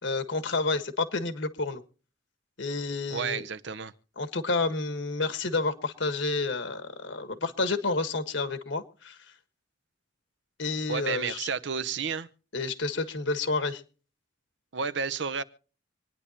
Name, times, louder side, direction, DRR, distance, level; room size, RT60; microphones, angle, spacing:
voice 1, 0.0-1.8 2.6-3.4 4.2-9.2 10.6-11.5 12.5-13.8, left 3 dB, 70° left, 1.5 m, -30 dB
voice 2, 3.1-3.9 10.9-12.3 14.7-15.4, right 6 dB, 65° right, 0.7 m, -31 dB
26.0 x 10.0 x 2.9 m
head